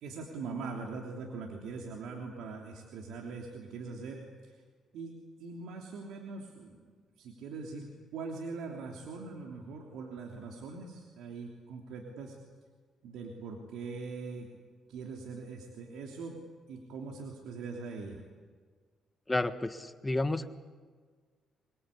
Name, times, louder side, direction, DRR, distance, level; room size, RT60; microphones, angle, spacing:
voice 1, 0.0-4.2 4.9-5.1 5.4-12.4 13.0-14.5 14.9-16.4 16.7-18.2, right 4 dB, 85° right, 0 dB, 3.2 m, -42 dB
voice 2, 19.3-20.5, left 2 dB, 15° left, 9 dB, 1.6 m, -31 dB
25.5 x 21.5 x 8.6 m, 1.5 s
cardioid pair, 90°, 0 cm